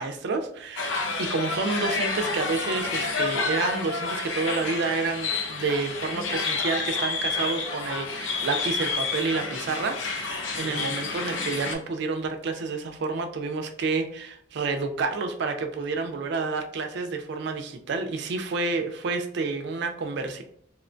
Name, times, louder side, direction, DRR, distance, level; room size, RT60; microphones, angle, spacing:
voice 1, 0.0-20.4, right 4 dB, 60° right, 6 dB, 0.4 m, -29 dB
sound 1, 0.8-11.7, left 4 dB, 80° left, 0.5 m, -29 dB
2.9 x 2.1 x 2.5 m, 0.69 s
head